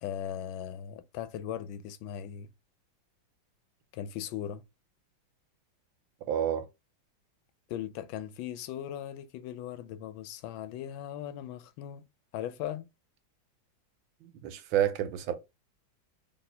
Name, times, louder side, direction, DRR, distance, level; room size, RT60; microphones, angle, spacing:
voice 1, 0.0-2.5 3.9-4.6 7.7-12.0 12.3-12.9, left 10 dB, 85° left, 1.4 m, -38 dB
voice 2, 6.3-6.6 14.2-15.3, right 10 dB, 85° right, 1.5 m, -29 dB
4.1 x 3.5 x 2.7 m
omnidirectional pair, 2.1 m